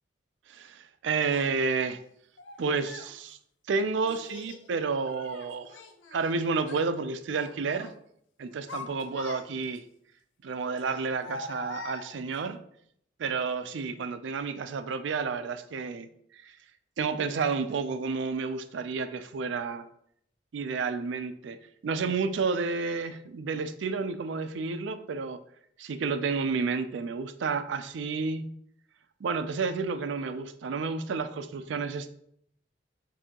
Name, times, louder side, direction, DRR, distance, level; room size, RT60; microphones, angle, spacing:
voice 1, 0.5-2.0 2.6-3.4 3.7-5.8 6.1-7.9 8.4-9.8 10.4-12.6 13.2-16.1 16.4-16.6 17.0-19.9 20.5-21.6 21.8-25.4 25.8-28.5 29.2-32.1, right 4 dB, 75° right, 10 dB, 0.4 m, -30 dB
Child speech kid speaking, 1.3-1.5 2.4-3.1 4.0-4.6 5.1-6.3 6.6-6.9 7.3-7.9 8.4-9.8 10.8-12.5, left 3 dB, 80° left, 0.6 m, -43 dB
6.6 x 2.7 x 2.9 m, 0.70 s
head